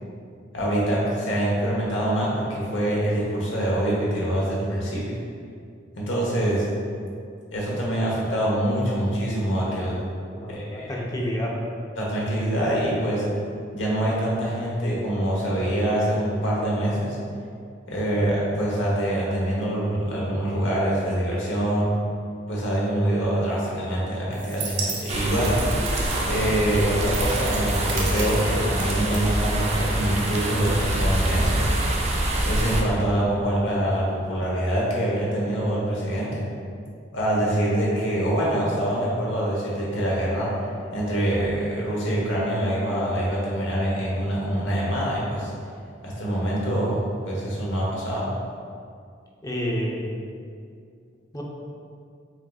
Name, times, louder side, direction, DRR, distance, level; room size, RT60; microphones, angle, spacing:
voice 1, 0.5-5.0 6.0-6.7 7.5-9.9 10.5-10.8 12.0-13.2 13.7-17.2 17.9-21.9 22.5-25.6 26.3-31.6 32.4-36.3 37.1-40.5 40.9-45.5 46.0-48.3, right 1 dB, 85° left, -5 dB, 0.9 m, -25 dB
voice 2, 10.3-11.5 49.4-50.1 51.3-51.4, equal, 20° left, -2 dB, 0.5 m, -29 dB
sound 1, 24.3-30.0, right 4 dB, 80° right, 0.6 m, -35 dB
sound 2, 25.1-32.8, right 1 dB, 35° right, 0.4 m, -25 dB
6.1 x 2.5 x 2.3 m, 2.3 s
head